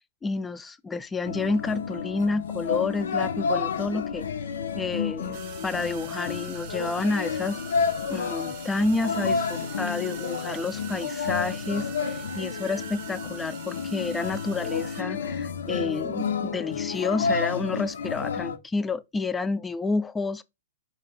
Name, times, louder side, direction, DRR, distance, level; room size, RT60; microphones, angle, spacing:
voice 1, 0.2-4.3 4.7-7.6 8.1-20.4, left 3 dB, 10° left, 0.3 m, -29 dB
sound 1, 1.2-18.6, left 6 dB, 70° left, 0.5 m, -30 dB
sound 2, 5.3-15.0, right 9 dB, 50° right, 0.6 m, -43 dB
3.9 x 2.4 x 3.4 m
hypercardioid pair, 110°, 0 cm